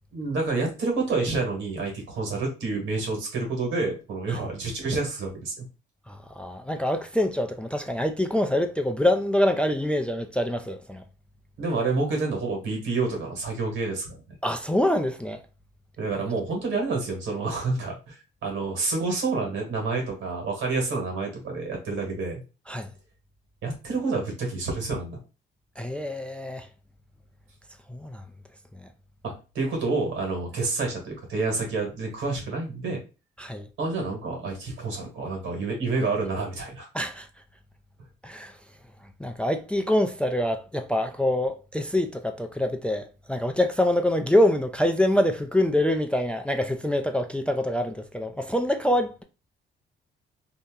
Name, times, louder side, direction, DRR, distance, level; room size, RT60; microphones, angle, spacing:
voice 1, 0.1-5.6 11.6-14.2 16.0-22.4 23.6-25.2 29.2-33.0 33.8-36.9, right 3 dB, 80° right, 1.5 m, -28 dB
voice 2, 6.1-11.0 14.4-15.4 22.7-22.9 25.8-26.7 27.9-28.2 28.7-28.9 33.4-33.7 36.9-37.3 38.2-38.6 39.2-49.2, left 1 dB, 5° left, 0.3 m, -25 dB
2.8 x 2.1 x 3.6 m
cardioid pair, 90°, 20 cm